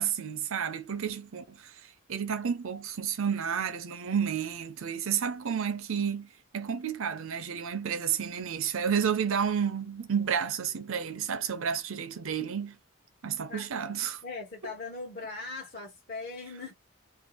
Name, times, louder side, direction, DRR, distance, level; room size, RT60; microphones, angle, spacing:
voice 1, 0.0-1.7 2.1-12.8 13.2-14.2, right 7 dB, 70° right, 0.5 m, -31 dB
voice 2, 14.2-16.7, left 3 dB, 40° left, 0.8 m, -39 dB
2.6 x 2.3 x 2.9 m
head